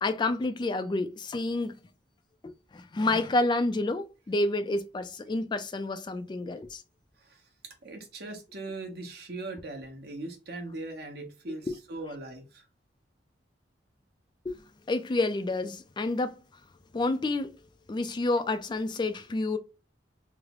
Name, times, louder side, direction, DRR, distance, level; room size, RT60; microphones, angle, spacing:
voice 1, 0.0-1.7 2.4-6.8 11.7-11.8 14.4-14.6 14.9-16.4 16.9-17.6 17.9-19.6, left 2 dB, 25° left, 0.3 m, -29 dB
voice 2, 7.2-12.7, right 2 dB, 60° right, 1.0 m, -40 dB
3.2 x 2.0 x 3.6 m
head